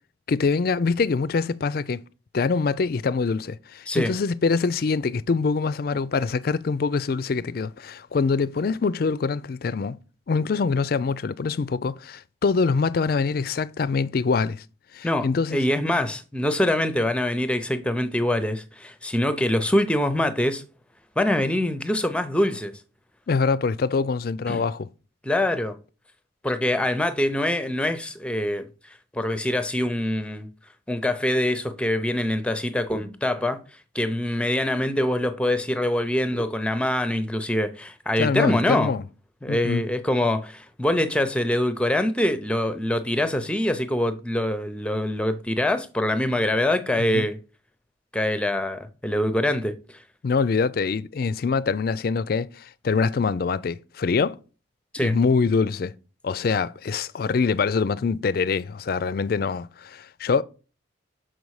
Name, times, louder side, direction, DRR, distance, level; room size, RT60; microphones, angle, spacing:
voice 1, 0.3-2.0 2.3-10.0 10.3-14.6 14.9-15.6 23.3-24.9 38.2-39.0 39.5-39.9 47.1-47.3 50.2-54.4 55.0-55.9 56.2-60.4, left 4 dB, 50° left, 0.4 m, -24 dB
voice 2, 15.0-20.6 21.2-22.7 24.5-24.6 25.2-25.8 26.4-28.7 29.1-30.5 30.9-33.6 33.9-38.9 39.4-47.4 48.1-49.7 54.9-55.1, left 1 dB, 5° left, 0.6 m, -24 dB
6.3 x 5.3 x 4.8 m
head